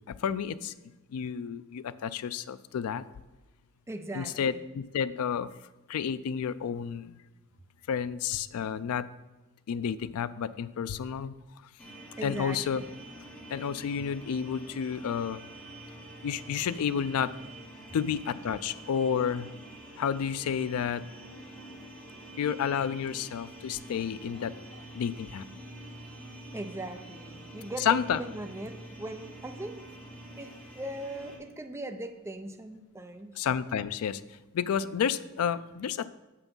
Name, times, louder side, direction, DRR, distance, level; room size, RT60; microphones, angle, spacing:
voice 1, 0.2-0.7 1.1-3.0 4.1-5.5 5.9-7.2 7.9-9.1 9.7-11.3 12.2-12.8 13.5-15.4 16.2-17.3 17.9-19.5 20.0-21.0 22.4-24.5 24.9-25.4 27.8-28.2 33.4-34.2 34.5-36.1, left 7 dB, 85° left, 16 dB, 0.4 m, -30 dB
voice 2, 3.9-4.6 12.2-12.9 26.5-29.8 30.4-33.4, right 1 dB, 15° right, 6 dB, 0.5 m, -39 dB
sound 1, 11.8-31.4, right 1 dB, 5° left, 1.9 m, -46 dB
7.0 x 5.7 x 5.4 m, 1.1 s
head